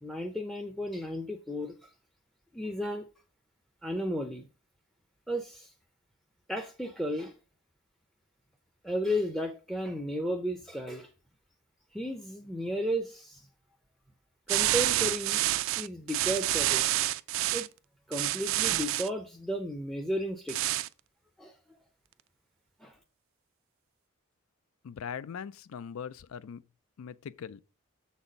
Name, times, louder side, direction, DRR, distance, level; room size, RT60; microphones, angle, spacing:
voice 1, 0.0-1.9 2.5-3.1 3.8-4.5 5.3-5.7 6.5-7.3 8.8-11.1 11.9-13.5 14.5-15.4 15.8-16.9 17.5-17.7 18.1-20.6 21.4-21.6 22.8-23.0, equal, ahead, 0.5 m, -33 dB
sound 1, 14.5-17.7 18.1-19.1 20.5-20.9, right 15 dB, 65° right, 0.3 m, -28 dB
voice 2, 24.8-26.6 27.0-27.6, left 7 dB, 80° left, 0.4 m, -40 dB
6.9 x 4.1 x 5.0 m
head